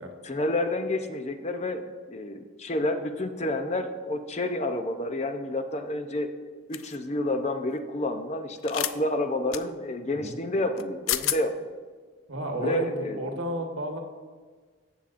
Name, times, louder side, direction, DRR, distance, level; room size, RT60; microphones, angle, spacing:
voice 1, 0.2-6.3 6.7-11.5 12.6-13.2, left 1 dB, 35° left, 7 dB, 0.6 m, -29 dB
sound 1, 6.7-7.0 8.6-8.9 9.5-9.6 10.8-10.9 11.1-11.4, left 12 dB, 90° left, 0.4 m, -28 dB
voice 2, 12.3-14.0, right 1 dB, 80° right, 3 dB, 1.3 m, -32 dB
15.5 x 7.1 x 2.5 m, 1.5 s
head